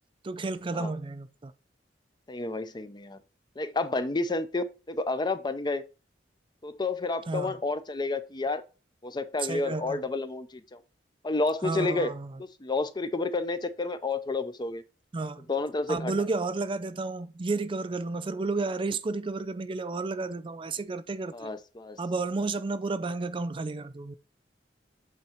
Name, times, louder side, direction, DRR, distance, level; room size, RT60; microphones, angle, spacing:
voice 1, 0.2-1.5 7.3-7.6 9.4-10.0 11.6-12.4 15.1-15.5 15.9-21.5 22.0-24.2, right 3 dB, 30° right, 0.4 m, -32 dB
voice 2, 2.3-3.2 3.6-5.8 6.6-8.6 9.0-10.8 11.2-12.1 12.4-14.8 15.5-16.1 21.3-22.0, left 3 dB, 25° left, 0.5 m, -30 dB
8.5 x 3.6 x 4.3 m
head